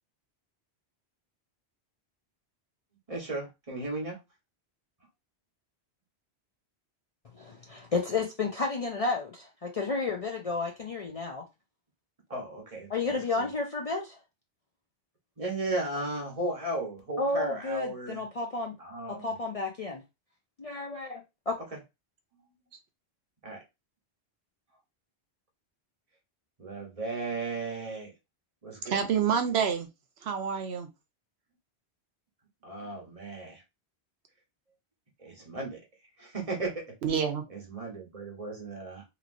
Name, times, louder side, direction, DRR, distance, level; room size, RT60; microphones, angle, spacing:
voice 1, 3.1-4.2 12.3-13.5 15.4-18.2 18.8-19.3 21.7-21.8 23.4-23.6 26.6-28.1 28.6-29.0 32.6-33.6 35.2-35.8 36.2-36.9 37.5-39.0, right 2 dB, 35° right, 1.1 m, -35 dB
voice 2, 7.3-11.4 12.9-14.2 17.2-18.8 19.1-20.0 20.6-21.5, left 3 dB, 45° left, 0.5 m, -32 dB
voice 3, 28.8-29.9 30.2-30.9 37.0-37.4, right 7 dB, 75° right, 0.8 m, -27 dB
3.0 x 2.9 x 2.5 m
omnidirectional pair, 1.1 m